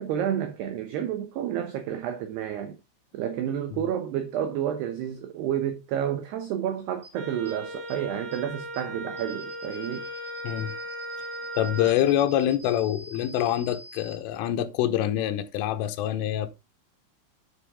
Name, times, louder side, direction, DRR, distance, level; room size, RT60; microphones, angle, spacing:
voice 1, 0.0-2.8 3.1-10.1, right 10 dB, 75° right, 2.5 m, -30 dB
sound 1, 7.0-7.1 7.4-7.5 7.9-8.0 8.3-8.4 8.7-8.8 9.2-14.2, right 1 dB, 5° left, 2.7 m, -47 dB
Wind instrument woodwind instrument, 7.1-12.0, right 1 dB, 50° right, 4.4 m, -37 dB
voice 2, 11.6-16.5, left 11 dB, 80° left, 3.4 m, -25 dB
9.6 x 8.2 x 3.6 m
omnidirectional pair, 6.0 m